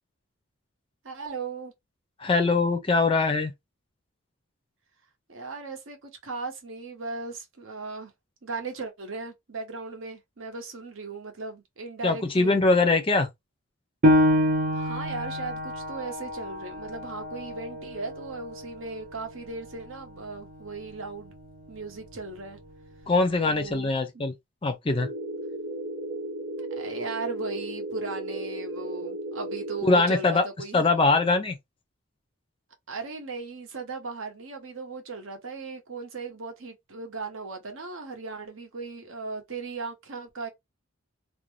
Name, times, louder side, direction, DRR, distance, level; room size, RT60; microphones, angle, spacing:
voice 1, 1.0-1.7 5.3-8.1 8.4-12.6 14.7-21.3 21.7-22.6 23.5-24.2 26.8-30.9 32.9-40.5, right 4 dB, 65° right, 0.8 m, -37 dB
voice 2, 2.2-3.5 12.0-13.3 23.1-24.3 24.6-25.1 29.8-30.4 30.7-31.6, left 3 dB, 25° left, 0.4 m, -22 dB
Piano, 14.0-19.2 19.7-19.8 20.4-20.9, left 1 dB, 40° right, 0.6 m, -26 dB
sound 1, 24.9-29.9, right 1 dB, 20° right, 0.9 m, -35 dB
2.5 x 2.1 x 3.1 m
head